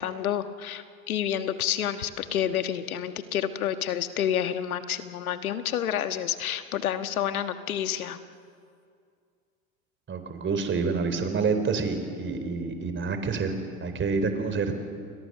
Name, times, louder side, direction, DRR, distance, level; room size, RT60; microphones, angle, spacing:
voice 1, 0.0-8.2, left 10 dB, 85° left, 10 dB, 1.5 m, -29 dB
voice 2, 10.1-13.5 13.8-14.7, right 4 dB, 25° right, 8 dB, 3.8 m, -27 dB
30.0 x 22.0 x 6.7 m, 2.3 s
hypercardioid pair, 95°, 42 cm